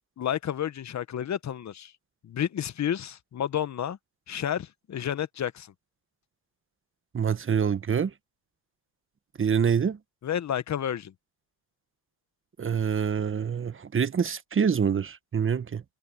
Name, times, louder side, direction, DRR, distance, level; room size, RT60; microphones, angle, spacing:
voice 1, 0.2-1.9 2.2-4.0 4.3-5.7 10.2-11.1, left 10 dB, 50° left, 1.3 m, -30 dB
voice 2, 7.1-8.1 9.4-10.0 12.6-15.8, right 7 dB, 35° right, 1.3 m, -26 dB
open air
supercardioid pair, 70°, 34 cm